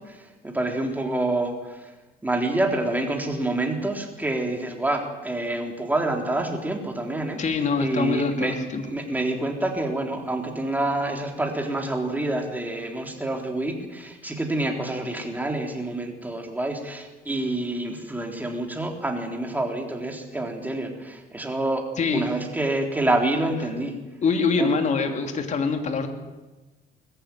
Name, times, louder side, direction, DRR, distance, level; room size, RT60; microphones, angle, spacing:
voice 1, 0.0-1.9 2.2-7.4 7.8-21.9 22.1-23.9 24.6-24.7, right 2 dB, 10° right, 3 dB, 3.7 m, -27 dB
voice 2, 7.4-8.8 22.0-22.2 24.2-26.1, left 4 dB, 45° left, 6 dB, 2.9 m, -24 dB
20.5 x 15.0 x 9.4 m, 1.2 s
cardioid pair, 110°, 17 cm